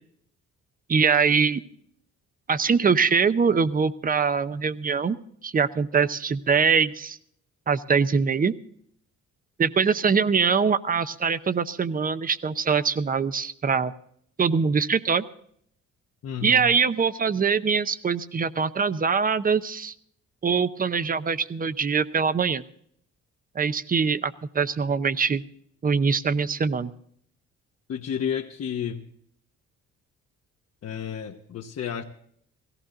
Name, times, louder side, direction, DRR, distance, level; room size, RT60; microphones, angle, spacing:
voice 1, 0.9-1.6 2.5-5.2 5.4-7.2 7.7-8.5 9.6-13.9 14.4-15.2 16.4-19.9 20.4-22.6 23.5-25.4 25.8-26.9, right 5 dB, 30° right, 14 dB, 0.7 m, -23 dB
voice 2, 16.2-16.7 27.9-29.0 30.8-32.0, left 8 dB, 55° left, 1 dB, 1.1 m, -31 dB
17.0 x 15.0 x 3.8 m, 0.66 s
cardioid pair, 90°, 30 cm